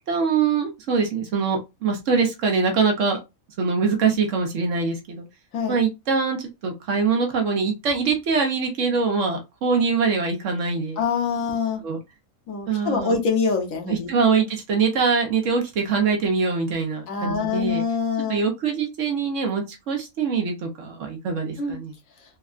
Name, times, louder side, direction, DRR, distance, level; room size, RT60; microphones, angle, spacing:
voice 1, 0.1-3.2 3.6-5.3 5.7-11.0 11.8-12.0 12.7-13.1 13.9-17.8 18.3-22.0, right 5 dB, 65° right, 1.0 m, -23 dB
voice 2, 11.0-11.8 12.5-14.1 17.1-18.4 21.6-21.8, left 5 dB, 70° left, 1.2 m, -25 dB
3.5 x 2.1 x 2.4 m
omnidirectional pair, 1.5 m